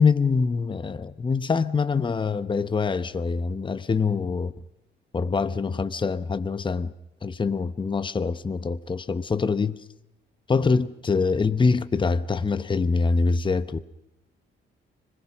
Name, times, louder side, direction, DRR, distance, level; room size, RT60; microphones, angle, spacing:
voice 1, 0.0-4.5 5.1-6.9 7.2-9.8 10.5-13.8, left 4 dB, 25° left, 0.9 m, -24 dB
25.5 x 20.0 x 6.2 m
cardioid pair, 90°, 20 cm